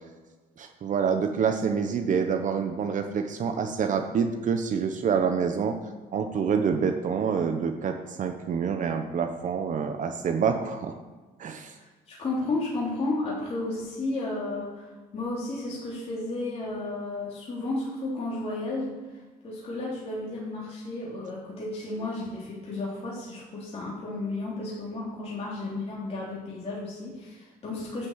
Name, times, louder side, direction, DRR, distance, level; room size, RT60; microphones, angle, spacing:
voice 1, 0.6-5.7 6.1-10.9 11.4-11.7, right 6 dB, 50° right, 5 dB, 1.0 m, -27 dB
voice 2, 11.8-28.1, left 2 dB, 35° left, -6 dB, 3.2 m, -33 dB
10.5 x 6.0 x 8.1 m, 1.3 s
cardioid pair, 110°, 17 cm